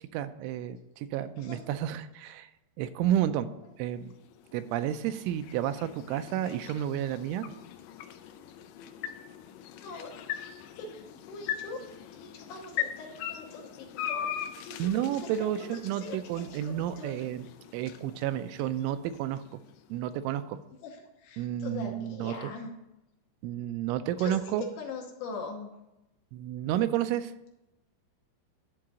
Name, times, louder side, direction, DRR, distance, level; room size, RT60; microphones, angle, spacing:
voice 1, 0.1-2.5 2.8-3.5 3.8-4.1 4.5-7.5 14.8-17.5 17.7-19.6 19.9-20.6 21.4-22.5 23.4-24.6 26.3-27.3, right 11 dB, 85° right, 11 dB, 3.0 m, -31 dB
voice 2, 1.4-1.7 9.8-10.5 10.8-15.5 16.0-17.2 20.8-22.7 24.2-24.4 24.8-25.7, left 4 dB, 75° left, 1 dB, 2.9 m, -42 dB
sound 1, 3.9-20.1, left 10 dB, 90° left, 2.3 m, -41 dB
11.5 x 3.8 x 7.4 m, 0.92 s
omnidirectional pair, 5.5 m